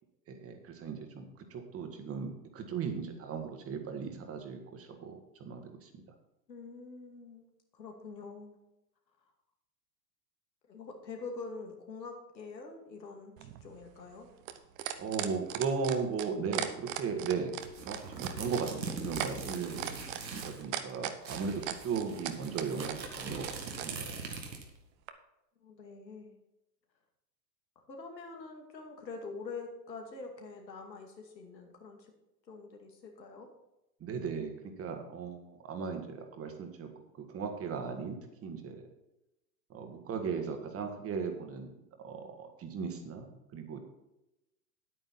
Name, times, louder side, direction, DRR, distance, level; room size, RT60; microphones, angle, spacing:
voice 1, 0.3-5.9 15.0-17.5 17.9-19.9 20.3-24.1 34.0-36.9 37.2-38.8 39.7-41.7 42.0-43.8, right 5 dB, 25° right, 5 dB, 1.8 m, -37 dB
voice 2, 6.5-8.6 10.7-14.3 25.6-26.3 27.8-32.1 32.5-33.5, left 4 dB, 80° left, 2 dB, 2.4 m, -45 dB
sound 1, 13.4-23.9 25.1-25.2, right 12 dB, 50° right, 1.1 m, -37 dB
sound 2, 17.6-20.6 20.9-21.0 21.2-24.8, right 4 dB, 85° right, 2.0 m, -42 dB
9.7 x 9.0 x 4.2 m, 0.92 s
hypercardioid pair, 100°, 50 cm